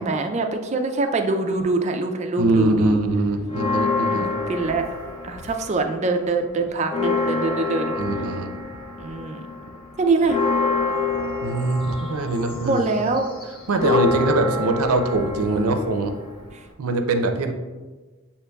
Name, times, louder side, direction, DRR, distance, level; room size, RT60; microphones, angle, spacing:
voice 1, 0.0-3.0 4.1-4.2 4.5-4.8 5.2-7.9 9.0-9.4 10.0-10.4 12.6-13.3, right 3 dB, 30° right, 5 dB, 0.3 m, -24 dB
voice 2, 2.4-4.3 8.0-8.5 11.4-12.8 13.7-16.1 16.8-17.5, right 2 dB, 85° right, 6 dB, 0.5 m, -22 dB
Church bell, 3.5-5.9 6.2-6.3 6.7-16.7, left 4 dB, 25° left, 0.5 m, -27 dB
7.7 x 2.9 x 2.3 m, 1.3 s
head